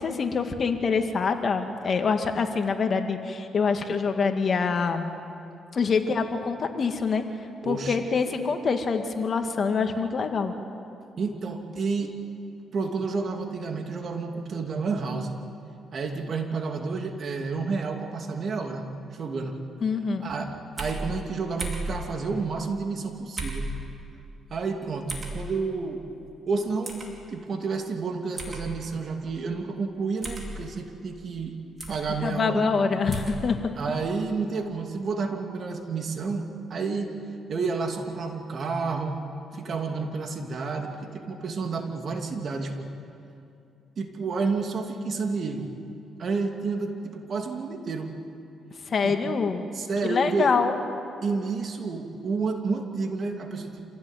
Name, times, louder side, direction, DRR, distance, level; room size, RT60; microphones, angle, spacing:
voice 1, 0.0-5.2 5.7-7.2 7.6-10.5 19.8-20.3 32.2-33.7 48.9-49.6 50.0-50.8, left 5 dB, 45° left, 5 dB, 2.1 m, -25 dB
voice 2, 7.6-8.1 11.2-12.2 12.7-15.3 15.9-19.6 20.2-23.7 24.5-26.0 26.5-27.0 27.3-31.6 31.9-32.7 33.8-37.2 37.5-39.2 39.5-42.9 44.0-45.7 46.2-48.1 49.0-49.2 49.7-50.6 51.2-53.9, right 4 dB, 50° right, 4 dB, 2.7 m, -30 dB
sound 1, 20.8-21.0 21.6-21.9 23.4-23.7 25.1-25.3 26.8-27.1 28.4-28.6 30.2-30.5 31.8-32.0 33.1-33.4, right 3 dB, 35° right, 4.9 m, -34 dB
27.5 x 16.5 x 9.3 m, 2.6 s
cardioid pair, 90°, 0 cm